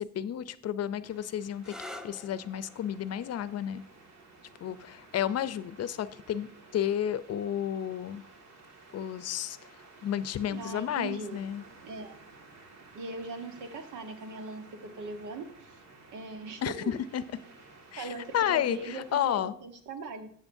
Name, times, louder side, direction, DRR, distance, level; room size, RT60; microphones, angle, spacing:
voice 1, 0.0-1.7 2.0-3.8 4.6-8.2 8.9-9.6 10.0-11.6 16.6-17.2 17.9-18.1 18.3-19.5, left 10 dB, 55° left, 15 dB, 0.6 m, -31 dB
sound 1, 1.0-19.3, right 3 dB, 60° right, 2.1 m, -54 dB
sound 2, 1.5-9.0 10.0-10.5 14.0-14.4, left 1 dB, ahead, 0.8 m, -52 dB
voice 2, 10.5-11.4 11.8-12.1 12.9-15.8 16.1-16.9 18.0-20.3, right 3 dB, 85° right, 7 dB, 1.3 m, -40 dB
12.5 x 7.8 x 2.7 m, 0.66 s
cardioid pair, 90°, 30 cm